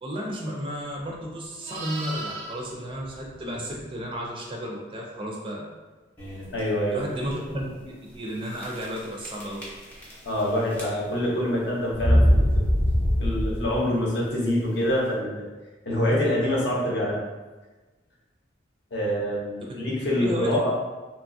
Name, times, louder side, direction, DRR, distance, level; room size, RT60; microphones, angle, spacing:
voice 1, 0.0-5.7 6.9-9.6 20.2-20.7, equal, 25° right, -2 dB, 0.4 m, -33 dB
Livestock farm animals working animals, 0.9-4.2 8.6-8.8, right 2 dB, 85° right, 0.4 m, -40 dB
sound 1, 6.2-6.6 7.2-7.3 7.6-7.7 8.6-9.0 9.2-10.4 10.7-11.2 11.9-13.9, equal, 10° left, 0.7 m, -22 dB
voice 2, 6.5-7.0 10.2-12.5 13.2-15.4 15.8-17.2 18.9-20.7, left 1 dB, 60° left, -4 dB, 0.8 m, -25 dB
2.9 x 2.3 x 2.6 m, 1.2 s
head